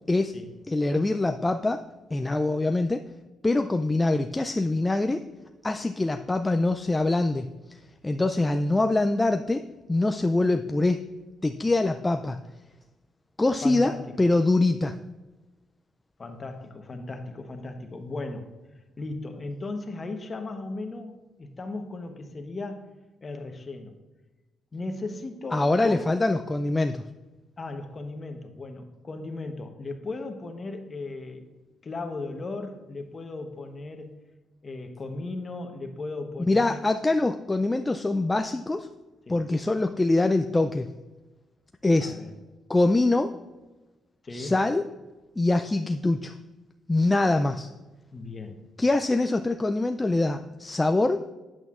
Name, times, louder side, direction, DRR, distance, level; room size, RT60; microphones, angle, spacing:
voice 1, 0.7-1.8 2.1-3.0 3.4-5.2 5.6-7.8 8.0-9.6 9.9-11.0 11.4-12.4 13.4-13.9 14.2-15.0 25.5-27.0 36.5-38.9 39.3-40.9 41.8-42.2 42.7-43.3 44.3-44.8 45.4-46.3 46.9-47.7 48.8-51.2, left 2 dB, 15° left, 6 dB, 0.3 m, -24 dB
voice 2, 13.6-14.1 16.2-18.5 19.0-22.9 23.2-24.0 24.7-26.1 27.6-31.4 31.8-34.2 34.6-36.9 39.3-39.4 42.0-42.3 44.2-44.6 48.1-48.6, left 2 dB, 35° left, 6 dB, 1.0 m, -36 dB
9.0 x 8.0 x 2.4 m, 1.1 s
cardioid pair, 90°, 0 cm